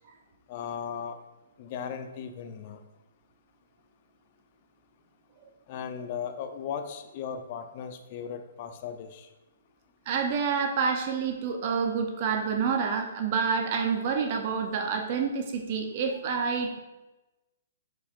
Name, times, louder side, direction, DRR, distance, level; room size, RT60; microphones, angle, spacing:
voice 1, 0.5-1.2 1.6-2.8 5.7-9.3, left 7 dB, 40° left, 7 dB, 0.8 m, -37 dB
voice 2, 10.1-16.8, right 5 dB, 40° right, 4 dB, 0.8 m, -28 dB
11.0 x 4.9 x 2.6 m, 1.1 s
figure-of-eight pair, 125°, 0 cm